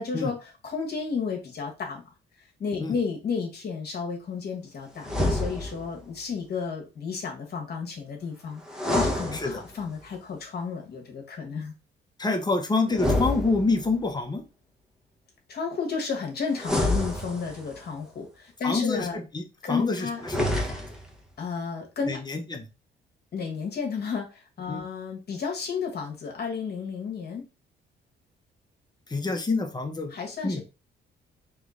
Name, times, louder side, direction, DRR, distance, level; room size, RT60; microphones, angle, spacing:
voice 1, 0.0-2.0 2.4-11.7 15.5-19.2 19.6-20.2 21.4-22.2 23.3-27.4 30.1-30.6, left 5 dB, 55° left, 1 dB, 1.3 m, -32 dB
sound 1, 5.0-6.0 8.7-10.0 12.9-14.1 16.6-17.8 20.2-21.1, left 1 dB, 5° right, 1.1 m, -28 dB
voice 2, 12.2-14.4 18.6-19.4 19.7-20.8 22.1-22.6 24.7-24.8 29.1-30.1 30.4-30.6, left 3 dB, 20° left, 5 dB, 1.0 m, -27 dB
3.7 x 3.1 x 3.7 m, 0.30 s
cardioid pair, 90°, 20 cm